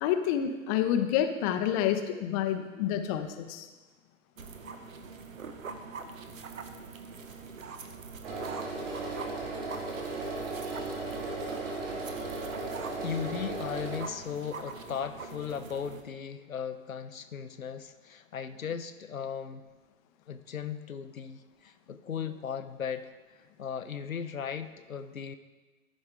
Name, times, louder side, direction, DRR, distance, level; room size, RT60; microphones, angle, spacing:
voice 1, 0.0-3.7, left 10 dB, 25° left, 7 dB, 0.6 m, -28 dB
sound 1, 4.4-16.0, right 5 dB, 75° right, 1.0 m, -44 dB
sound 2, 8.2-14.0, right 2 dB, 45° right, 2.4 m, -36 dB
voice 2, 12.9-19.6 20.3-23.1 23.6-25.4, left 7 dB, 80° left, 9 dB, 0.7 m, -37 dB
13.5 x 5.3 x 3.7 m, 1.2 s
figure-of-eight pair, 110°, 40 cm